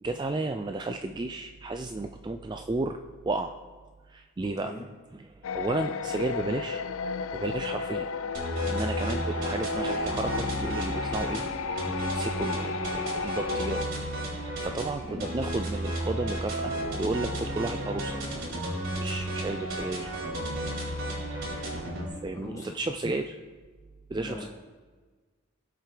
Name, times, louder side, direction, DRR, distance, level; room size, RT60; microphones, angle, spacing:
voice 1, 0.0-3.0 3.2-3.6 4.1-4.7 5.1-6.8 7.3-8.1 8.6-11.4 11.8-13.8 14.4-18.2 19.0-20.1 22.2-23.3 24.1-24.5, right 2 dB, 20° right, 6 dB, 0.3 m, -33 dB
voice 2, 4.4-4.9 15.0-15.2 22.3-22.9 24.1-24.5, left 1 dB, 15° left, -3 dB, 2.0 m, -41 dB
sound 1, 5.4-13.8, left 6 dB, 70° left, 0.4 m, -33 dB
sound 2, 8.3-22.1, right 1 dB, 65° right, 4.1 m, -33 dB
20.0 x 7.6 x 3.4 m, 1.4 s
head